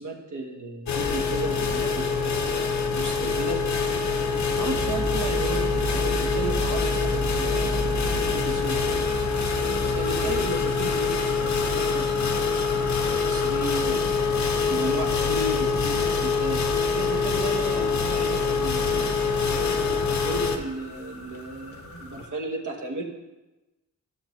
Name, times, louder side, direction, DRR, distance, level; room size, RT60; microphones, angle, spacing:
voice 1, 0.0-3.6 4.6-8.8 9.9-16.6 16.9-19.3 20.1-23.0, right 2 dB, 75° right, 1 dB, 1.4 m, -35 dB
sound 1, 0.9-20.6, left 5 dB, 70° left, 0.8 m, -25 dB
sound 2, 3.1-22.3, left 3 dB, 50° left, 1.6 m, -44 dB
sound 3, 4.8-10.7, right 2 dB, 15° right, 0.5 m, -32 dB
12.5 x 6.5 x 3.2 m, 1.1 s
wide cardioid pair, 170°, 30 cm